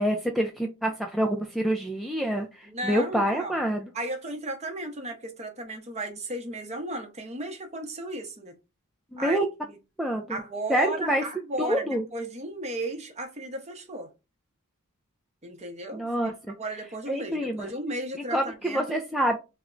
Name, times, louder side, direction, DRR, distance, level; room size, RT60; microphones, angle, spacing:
voice 1, 0.0-3.9 9.1-9.5 10.0-10.4 10.7-11.2 11.6-12.0 15.9-16.3 17.1-17.7 18.3-19.4, equal, ahead, 0.3 m, -27 dB
voice 2, 2.6-3.6 3.9-8.6 9.2-9.8 10.3-14.1 15.4-16.1 16.6-18.8, right 1 dB, 30° right, 0.7 m, -35 dB
3.4 x 2.1 x 3.7 m
head